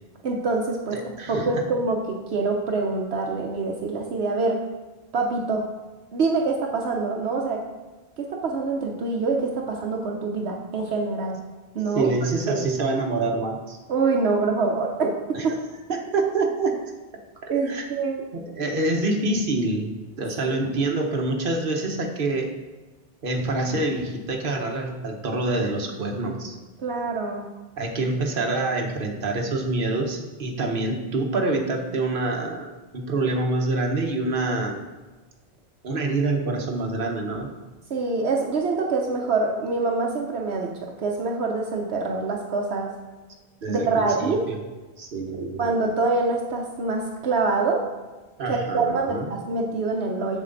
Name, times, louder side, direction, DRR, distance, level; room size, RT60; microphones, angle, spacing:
voice 1, 0.2-1.0 1.3-4.6 5.1-5.7 6.1-7.6 8.2-11.4 11.7-12.1 12.5-12.6 13.9-15.6 17.5-18.2 20.4-20.6 26.8-27.5 37.9-40.7 41.0-42.9 43.7-44.5 45.6-47.8 48.5-50.4, right 3 dB, 75° right, 0 dB, 1.1 m, -25 dB
voice 2, 0.9-1.5 11.9-13.8 15.3-15.5 15.9-16.8 17.4-17.9 18.3-22.5 23.2-26.5 27.8-34.8 35.8-37.5 43.6-44.6 45.0-45.7 48.4-49.3, right 2 dB, 55° right, 1 dB, 1.2 m, -26 dB
7.4 x 7.3 x 3.9 m, 1.2 s
omnidirectional pair, 1.1 m